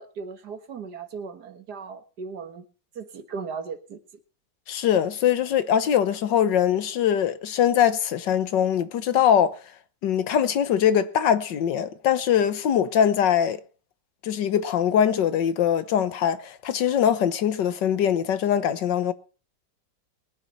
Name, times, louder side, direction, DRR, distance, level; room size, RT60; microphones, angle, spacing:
voice 1, 0.0-2.6 3.0-4.0, right 5 dB, 70° right, 2.0 m, -37 dB
voice 2, 4.7-9.6 10.0-13.6 14.2-19.1, left 9 dB, 90° left, 1.7 m, -22 dB
22.0 x 9.6 x 4.2 m
omnidirectional pair, 1.9 m